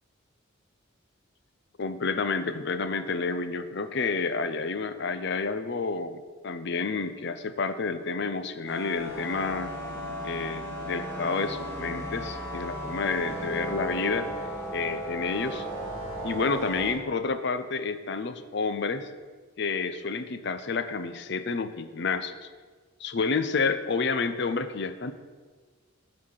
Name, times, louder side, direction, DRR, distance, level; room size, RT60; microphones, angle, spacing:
voice 1, 1.8-9.7 10.2-14.3 14.7-15.7 16.2-19.1 19.6-22.3 23.0-25.1, left 4 dB, 60° left, 11 dB, 0.6 m, -29 dB
sound 1, 8.7-16.9, right 1 dB, 15° left, 3.0 m, -35 dB
11.5 x 4.2 x 7.3 m, 1.4 s
head